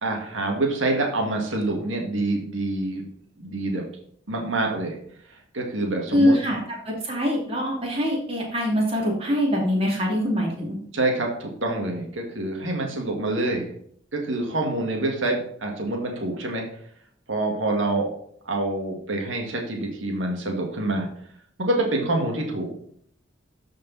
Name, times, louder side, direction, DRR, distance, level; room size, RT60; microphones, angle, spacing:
voice 1, 0.0-3.0 3.4-3.9 4.3-5.0 5.3-6.4 10.9-13.7 14.1-16.6 17.3-18.1 18.5-21.1 21.6-22.7, right 2 dB, 80° right, 1 dB, 2.0 m, -26 dB
voice 2, 6.1-6.6 6.8-10.7, equal, 30° right, -2 dB, 2.7 m, -23 dB
13.0 x 5.2 x 4.1 m, 0.65 s
head